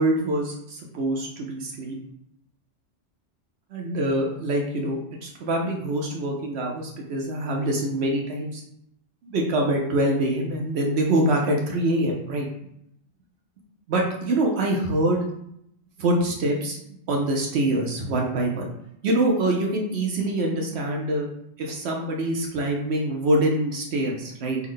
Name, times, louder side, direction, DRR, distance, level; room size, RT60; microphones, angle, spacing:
voice 1, 0.0-2.0 3.7-8.6 9.2-12.5 13.9-15.2 16.0-16.8 17.1-18.7 19.0-21.3 21.6-24.6, right 1 dB, 70° right, 0 dB, 0.9 m, -25 dB
3.4 x 2.1 x 3.6 m, 0.75 s
omnidirectional pair, 1.2 m